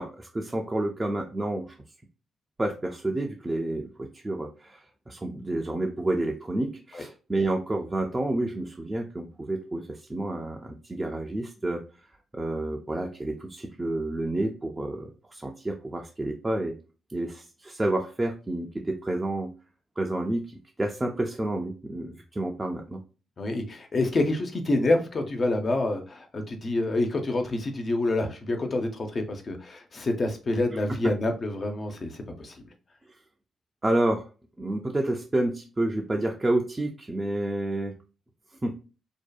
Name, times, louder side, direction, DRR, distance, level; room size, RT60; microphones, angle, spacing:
voice 1, 0.0-1.7 2.6-4.8 5.1-11.8 12.3-16.7 17.1-19.5 20.0-20.5 20.8-23.0 30.7-30.8 33.1-33.2 33.8-34.3 34.6-38.0 38.6-38.8, right 1 dB, 25° right, 1 dB, 0.4 m, -29 dB
voice 2, 23.4-32.6, left 2 dB, 45° left, 5 dB, 0.5 m, -27 dB
2.7 x 2.2 x 2.3 m, 0.33 s
hypercardioid pair, 40°, 0 cm